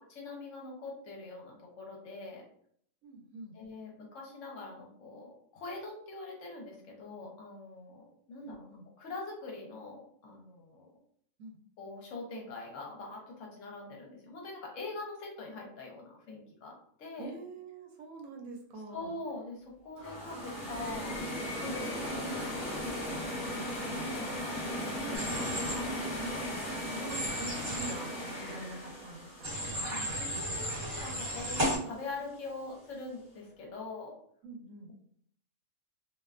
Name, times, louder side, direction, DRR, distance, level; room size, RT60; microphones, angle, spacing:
voice 1, 0.1-2.4 3.5-10.9 11.8-16.7 17.0-17.3 18.9-23.7 24.1-26.1 29.8-34.1, left 3 dB, 70° left, -1 dB, 1.0 m, -44 dB
voice 2, 3.0-3.6 8.4-8.9 11.4-11.6 17.2-19.1 25.0-25.2 25.5-25.7 26.9-29.8 34.4-34.9, right 3 dB, 80° right, 1 dB, 1.0 m, -45 dB
sound 1, 20.0-31.0, equal, 35° left, 0.9 m, -37 dB
Human voice / Train, 25.1-25.7 27.1-27.9 29.4-31.8, equal, 40° right, 1.3 m, -34 dB
2.5 x 2.1 x 2.3 m, 0.64 s
omnidirectional pair, 1.4 m